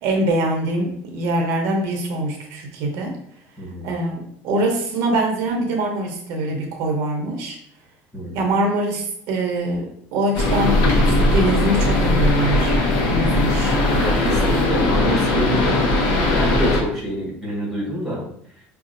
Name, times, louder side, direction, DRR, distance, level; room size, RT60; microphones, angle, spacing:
voice 1, 0.0-3.2 3.8-7.6 8.3-12.7 13.1-13.8, right 1 dB, 60° right, 2 dB, 0.7 m, -23 dB
voice 2, 3.6-3.9 8.1-8.4 14.0-15.8 16.3-18.2, equal, 5° left, -6 dB, 1.4 m, -26 dB
sound 1, 10.3-16.8, left 2 dB, 70° left, 0.8 m, -19 dB
5.0 x 2.4 x 2.5 m, 0.66 s
cardioid pair, 160°, 5 cm